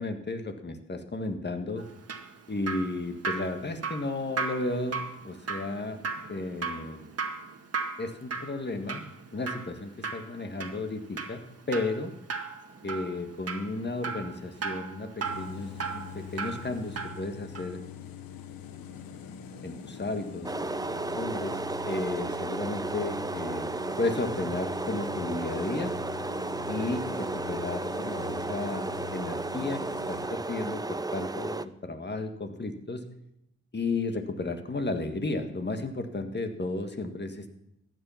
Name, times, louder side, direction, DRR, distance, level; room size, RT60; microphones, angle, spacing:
voice 1, 0.0-1.9 2.5-6.0 6.3-7.1 8.0-9.0 9.3-11.4 11.7-12.1 12.8-17.8 19.6-20.7 21.2-21.6 21.9-23.7 24.0-25.9 26.7-28.9 29.1-29.8 30.1-33.0 33.7-37.6, left 2 dB, 30° left, 7 dB, 1.8 m, -33 dB
Drip, 1.8-17.3 17.5-17.7, right 4 dB, 45° right, 1.9 m, -37 dB
sound 1, 15.2-30.3, left 7 dB, 85° left, 1.1 m, -43 dB
sound 2, 20.4-31.6, right 2 dB, 10° right, 0.5 m, -33 dB
14.5 x 9.2 x 5.8 m, 0.81 s
supercardioid pair, 55°, 34 cm